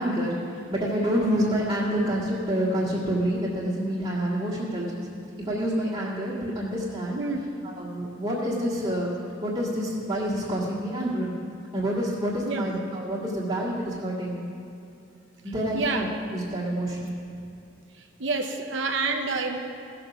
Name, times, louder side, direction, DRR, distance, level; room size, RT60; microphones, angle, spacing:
voice 1, 0.0-5.1 5.5-7.2 7.6-9.1 9.4-11.3 11.7-14.5 15.4-16.1 16.3-17.1, equal, 25° right, -9 dB, 1.9 m, -27 dB
voice 2, 7.2-7.5 12.5-12.7 15.7-16.1 18.2-19.6, right 3 dB, 75° right, 4 dB, 0.9 m, -28 dB
16.0 x 6.9 x 5.9 m, 2.6 s
head